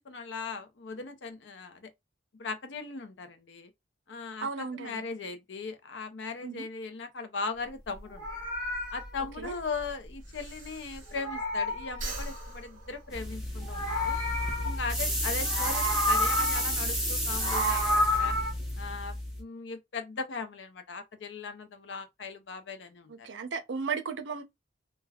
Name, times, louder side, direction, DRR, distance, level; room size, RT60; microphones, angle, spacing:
voice 1, 0.0-1.9 2.3-3.7 4.1-8.2 8.9-14.2 14.6-18.3 18.8-23.3, left 4 dB, 70° left, 0.6 m, -38 dB
voice 2, 4.4-5.0 6.4-6.7 9.4-9.6 23.1-24.4, right 5 dB, 75° right, 0.6 m, -35 dB
Meow, 8.0-10.7 10.9-12.6 13.4-15.1 15.4-16.8 17.2-18.5, left 1 dB, 20° left, 1.0 m, -31 dB
Breathing, 8.8-11.6 11.9-13.8, right 2 dB, 45° right, 0.9 m, -43 dB
je shaver, 13.1-19.4, equal, 5° right, 0.9 m, -32 dB
3.3 x 2.2 x 2.3 m
head